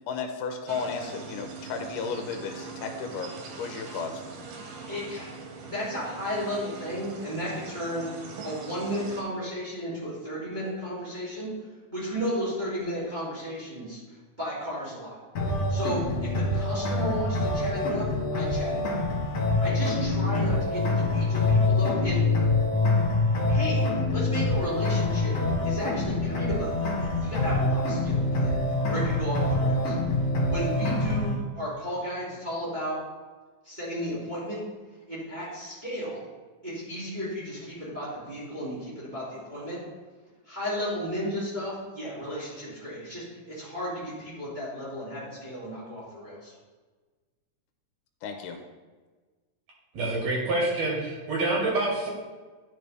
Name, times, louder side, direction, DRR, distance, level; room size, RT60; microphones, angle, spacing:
voice 1, 0.1-3.3 3.6-4.2 48.2-48.6, left 5 dB, 80° left, 4 dB, 2.2 m, -34 dB
sound 1, 0.7-9.2, right 4 dB, 75° right, 2.4 m, -42 dB
voice 2, 4.9-5.3 5.6-8.1 8.4-11.5 11.9-14.0 14.4-15.2 15.7-16.0 16.3-19.0 19.6-22.2 23.5-25.4 25.6-28.6 28.8-30.0 30.5-33.0 33.6-34.6 35.1-36.2 36.6-39.8 40.5-46.5, equal, 15° right, -8 dB, 2.1 m, -34 dB
sound 2, 15.4-31.4, left 2 dB, 55° left, 2.1 m, -25 dB
voice 3, 49.9-52.1, right 2 dB, 60° right, -3 dB, 2.7 m, -27 dB
10.0 x 4.6 x 3.3 m, 1.3 s
omnidirectional pair, 3.8 m